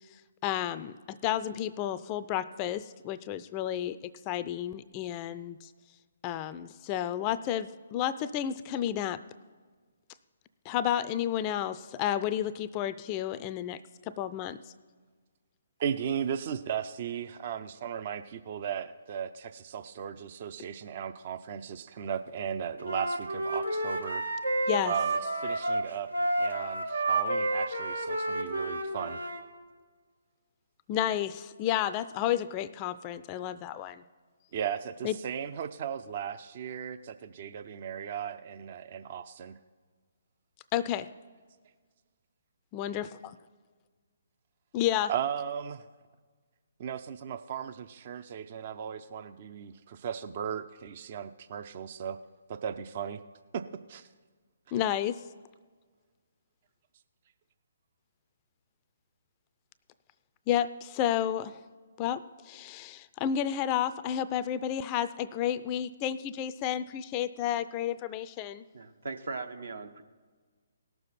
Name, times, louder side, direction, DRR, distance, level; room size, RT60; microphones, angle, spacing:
voice 1, 0.4-5.7 6.2-9.2 10.7-13.8 14.1-14.6 24.7-24.9 30.9-34.0 35.0-35.2 40.7-41.1 42.7-43.1 44.7-45.1 54.7-55.2 60.5-61.6 62.0-68.6, left 11 dB, 25° left, 14 dB, 0.4 m, -31 dB
voice 2, 15.8-24.2 24.9-29.2 34.5-39.6 45.1-45.9 46.8-52.2 52.5-53.2 53.5-53.6 53.9-54.1 54.7-54.8, right 8 dB, 45° right, 11 dB, 0.5 m, -36 dB
Wind instrument woodwind instrument, 22.8-29.4, right 2 dB, 85° right, 1.3 m, -30 dB
voice 3, 68.7-70.0, right 4 dB, 70° right, 7 dB, 1.0 m, -39 dB
18.0 x 6.9 x 4.2 m, 1.5 s
figure-of-eight pair, 135°, 0 cm